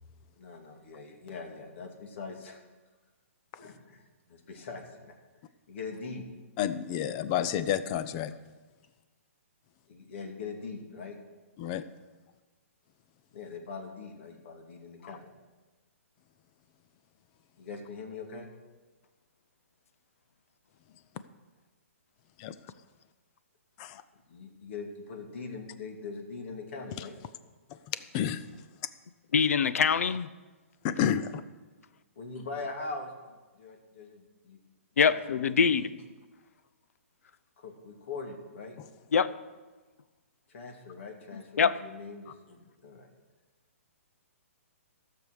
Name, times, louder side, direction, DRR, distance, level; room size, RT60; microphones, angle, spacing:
voice 1, 0.4-2.6 3.6-4.0 4.3-5.2 5.7-6.3 9.9-11.2 13.3-15.3 17.6-18.5 24.3-27.2 32.2-34.6 35.0-36.0 37.6-38.8 40.5-43.1, left 4 dB, 55° left, 3 dB, 2.3 m, -42 dB
voice 2, 6.6-8.4 11.6-11.8 15.0-15.1 22.4-22.5 23.8-24.0 27.9-28.4 30.8-31.4, left 9 dB, 30° left, 13 dB, 0.6 m, -30 dB
voice 3, 29.3-30.3 35.0-35.9 39.1-39.3 41.6-41.8, left 6 dB, 75° left, 15 dB, 0.6 m, -24 dB
14.5 x 6.8 x 6.5 m, 1.3 s
hypercardioid pair, 150°, 8 cm